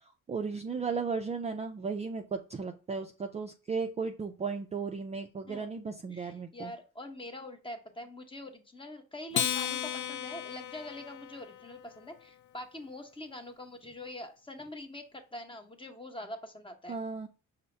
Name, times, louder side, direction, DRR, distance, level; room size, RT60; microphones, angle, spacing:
voice 1, 0.3-6.7 16.9-17.3, right 5 dB, 20° right, 4 dB, 0.3 m, -35 dB
voice 2, 6.1-17.0, left 1 dB, 15° left, 5 dB, 0.9 m, -44 dB
Acoustic guitar, 9.3-12.0, left 9 dB, 75° left, 0.5 m, -35 dB
5.4 x 2.1 x 4.2 m, 0.35 s
cardioid pair, 90°, 30 cm